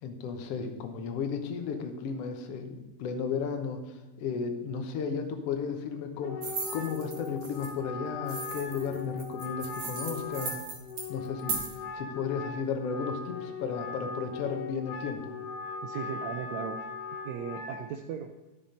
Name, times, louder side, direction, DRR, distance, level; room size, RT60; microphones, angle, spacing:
voice 1, 0.0-10.6 11.1-11.6 11.9-15.3, left 6 dB, 65° left, 5 dB, 1.6 m, -34 dB
Wind instrument woodwind instrument, 6.2-17.9, left 5 dB, 85° left, 2.8 m, -39 dB
sound 1, 6.4-7.7 8.3-11.7, right 4 dB, 50° right, 2.0 m, -37 dB
voice 2, 15.8-16.8 17.2-18.3, right 8 dB, 90° right, 5 dB, 1.5 m, -37 dB
12.5 x 5.9 x 5.1 m, 1.2 s
omnidirectional pair, 3.9 m